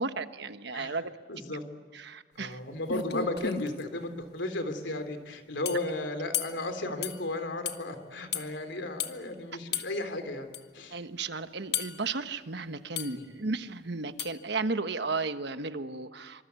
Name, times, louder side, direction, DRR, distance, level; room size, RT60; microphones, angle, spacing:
voice 1, 0.0-1.1 1.9-2.6 10.9-16.4, right 3 dB, 65° right, 10 dB, 1.2 m, -34 dB
voice 2, 1.3-1.6 2.3-11.0 13.1-13.2, left 2 dB, 80° left, 8 dB, 3.3 m, -34 dB
sound 1, 2.5-2.6 2.9-3.8 5.7-5.9 6.3-6.6 7.0-7.2 7.7-7.8 8.3-8.5 9.0-9.2 9.7-9.9 10.5-10.6 11.7-12.1 13.0-13.2 14.2-14.4, left 8 dB, 60° left, 1.5 m, -33 dB
26.5 x 26.0 x 8.3 m, 1.5 s
head